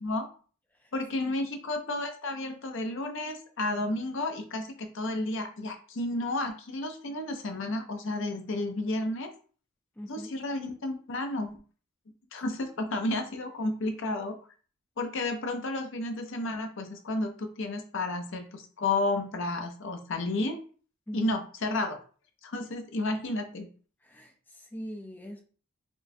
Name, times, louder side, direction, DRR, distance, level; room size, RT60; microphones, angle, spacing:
voice 1, 0.9-9.3 10.1-11.6 12.3-14.4 15.0-20.6 21.1-22.0 22.4-23.7, left 2 dB, 60° left, 0.6 m, -32 dB
voice 2, 10.0-10.3 21.1-21.2 24.0-25.4, equal, 10° left, 0.4 m, -42 dB
4.3 x 2.2 x 2.6 m
head